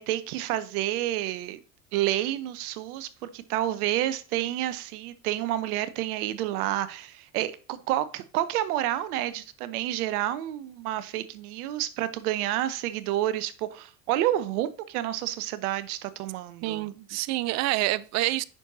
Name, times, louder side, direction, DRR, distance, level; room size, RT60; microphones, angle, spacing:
voice 1, 0.0-1.6 1.9-16.9, right 13 dB, 65° right, 0.9 m, -29 dB
voice 2, 16.6-18.4, right 17 dB, 35° right, 0.4 m, -27 dB
9.0 x 6.1 x 2.7 m
hypercardioid pair, 80°, 48 cm